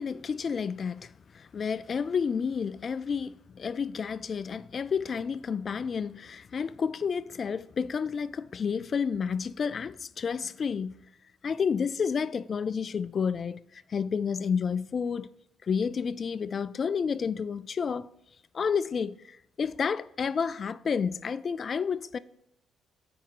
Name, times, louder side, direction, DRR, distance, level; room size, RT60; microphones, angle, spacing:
voice 1, 0.0-11.0 11.4-15.3 15.6-18.1 18.5-22.2, left 6 dB, 45° left, 0.3 m, -30 dB
9.7 x 4.7 x 3.9 m
cardioid pair, 80°, 0 cm